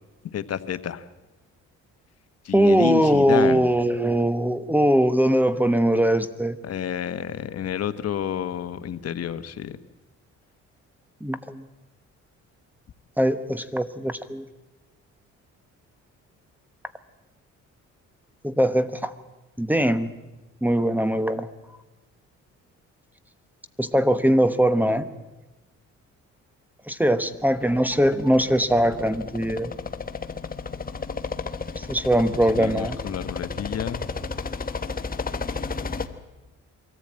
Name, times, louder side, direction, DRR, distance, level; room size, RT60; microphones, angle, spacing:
voice 1, 0.3-1.0 2.4-3.7 6.6-9.8 32.5-34.0, left 9 dB, 55° left, 11 dB, 1.1 m, -29 dB
voice 2, 2.5-6.6 11.2-11.6 13.2-14.4 18.4-19.1 19.6-20.1 20.6-21.5 23.8-25.1 26.9-29.7 31.8-33.0, equal, 5° right, 13 dB, 1.0 m, -21 dB
sound 1, 27.4-36.1, left 4 dB, 30° left, 1.2 m, -33 dB
23.5 x 14.5 x 8.8 m, 1.1 s
cardioid pair, 90°, 30 cm